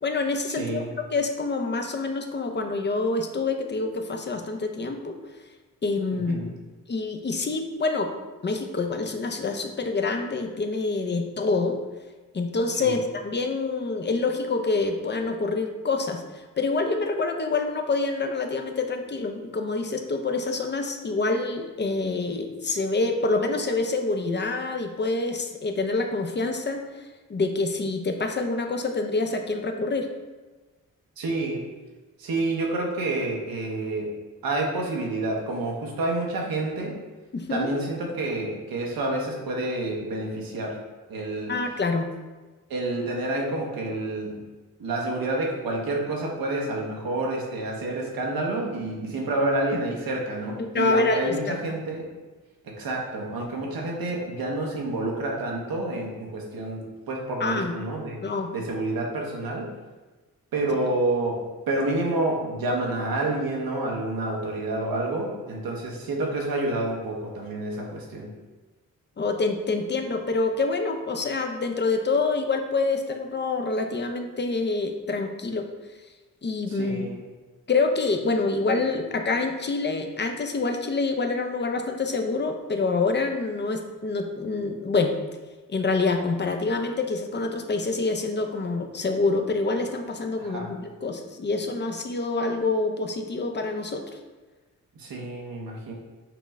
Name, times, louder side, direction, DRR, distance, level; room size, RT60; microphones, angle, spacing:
voice 1, 0.0-5.2 5.8-6.4 6.9-8.1 8.4-11.8 12.3-16.2 16.6-26.9 27.3-30.1 37.3-37.7 41.5-42.1 50.6-51.6 57.4-57.7 58.2-58.5 69.2-75.7 76.4-77.0 77.7-85.1 85.7-94.0, left 3 dB, 30° left, 5 dB, 0.6 m, -26 dB
voice 2, 0.6-0.9 6.3-6.5 12.8-13.0 31.2-31.6 32.2-34.1 34.4-37.0 37.5-40.8 41.1-41.6 42.7-44.4 44.8-52.1 52.6-58.2 58.5-59.7 60.5-61.4 61.7-68.3 76.7-77.2 90.4-90.7 95.0-95.9, right 2 dB, 80° right, -1 dB, 1.0 m, -28 dB
6.0 x 2.0 x 3.6 m, 1.2 s
cardioid pair, 60°, 35 cm